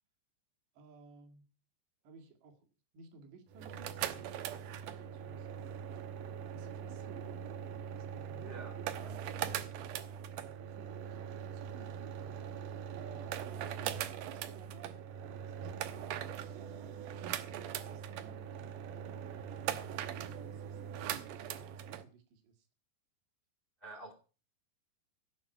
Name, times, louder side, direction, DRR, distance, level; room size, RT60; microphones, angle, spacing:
voice 1, 0.7-1.5 2.0-2.7 2.9-5.7 6.5-9.9 10.4-13.4 13.7-22.7, right 4 dB, 70° right, 4 dB, 4.2 m, -57 dB
sound 1, 3.5-22.0, right 9 dB, 85° right, 1.9 m, -41 dB
voice 2, 8.4-8.8 9.0-9.1 23.8-24.1, right 3 dB, 65° left, 7 dB, 0.5 m, -48 dB
16.0 x 6.2 x 9.2 m, 0.37 s
omnidirectional pair, 5.2 m